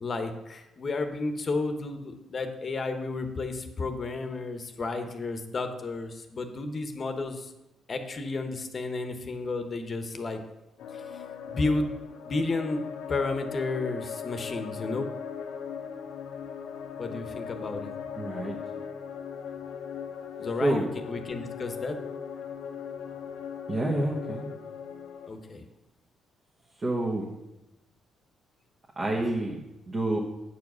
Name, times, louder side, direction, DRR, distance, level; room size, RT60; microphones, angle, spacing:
voice 1, 0.0-7.5 7.9-10.4 10.9-11.0 11.5-11.9 12.2-12.8 13.1-15.1 17.0-17.9 20.4-22.0 25.2-25.6, left 3 dB, 40° left, 7 dB, 1.0 m, -32 dB
sound 1, 10.8-25.3, left 7 dB, 85° left, 0.8 m, -39 dB
voice 2, 18.1-18.6 20.6-20.9 23.7-24.5 26.8-27.3 29.0-30.2, right 1 dB, 30° right, -3 dB, 1.4 m, -28 dB
8.7 x 4.7 x 6.2 m, 0.96 s
cardioid pair, 90°, 0 cm